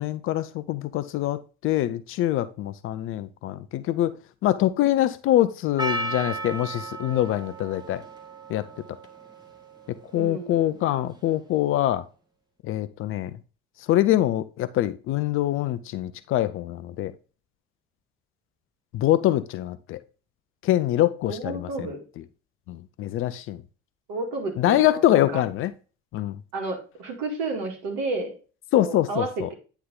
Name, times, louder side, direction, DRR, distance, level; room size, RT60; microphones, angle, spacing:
voice 1, 0.0-4.1 4.4-8.0 8.5-8.7 10.1-12.0 12.6-13.3 13.9-17.1 18.9-20.0 20.6-21.9 22.7-23.6 24.6-25.7 26.1-26.4 28.7-29.5, left 13 dB, 40° left, 0.5 m, -24 dB
Percussion, 5.8-10.8, right 2 dB, 10° right, 1.5 m, -35 dB
voice 2, 10.1-10.8 21.3-22.0 24.1-25.5 26.5-28.3 28.8-29.5, right 3 dB, 60° right, 2.0 m, -31 dB
9.3 x 3.4 x 3.8 m
figure-of-eight pair, 55°, 33 cm